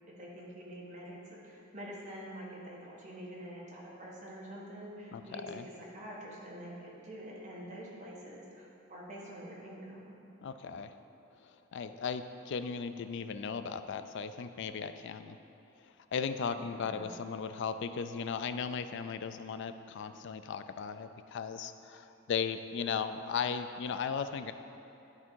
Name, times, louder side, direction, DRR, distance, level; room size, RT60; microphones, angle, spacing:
voice 1, 0.2-10.2 16.5-17.1, equal, 35° right, -5 dB, 1.4 m, -46 dB
voice 2, 5.1-5.7 10.4-10.9 11.4-15.4 16.1-24.5, left 6 dB, 60° left, 10 dB, 0.3 m, -37 dB
11.0 x 3.6 x 4.5 m, 2.7 s
head